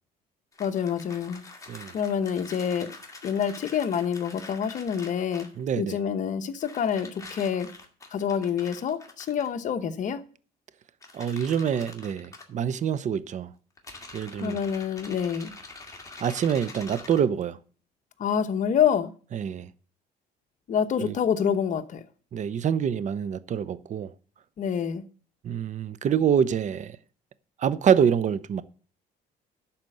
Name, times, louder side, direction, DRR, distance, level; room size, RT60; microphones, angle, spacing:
sound 1, 0.5-5.6 6.6-9.5 11.0-12.4 13.8-17.2, left 3 dB, 20° left, 2.2 m, -45 dB
voice 1, 0.6-1.4 1.9-3.0 3.2-5.5 5.8-7.7 8.1-10.2 14.4-15.5 18.2-19.1 20.7-22.0 24.6-25.0, left 8 dB, 45° left, 1.1 m, -27 dB
voice 2, 5.6-6.0 11.1-13.5 14.1-14.6 16.2-17.6 19.3-19.7 21.0-21.2 22.3-24.1 25.4-27.0 27.6-28.6, right 8 dB, 45° right, 0.7 m, -26 dB
11.5 x 4.4 x 7.7 m
cardioid pair, 110°, 17 cm